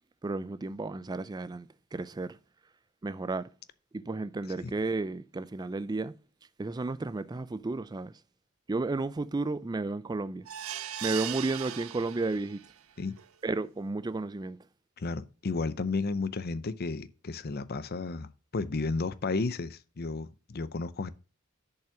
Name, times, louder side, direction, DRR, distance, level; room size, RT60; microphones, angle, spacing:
voice 1, 0.2-2.4 3.0-3.5 3.9-6.2 6.6-8.2 8.7-10.5 11.0-12.6 13.4-14.6, right 3 dB, 20° right, 0.4 m, -33 dB
sound 1, 10.5-12.7 13.2-13.3 13.6-13.7, right 11 dB, 75° right, 0.6 m, -38 dB
voice 2, 15.0-21.1, left 3 dB, 45° left, 0.6 m, -33 dB
7.1 x 5.5 x 6.9 m
head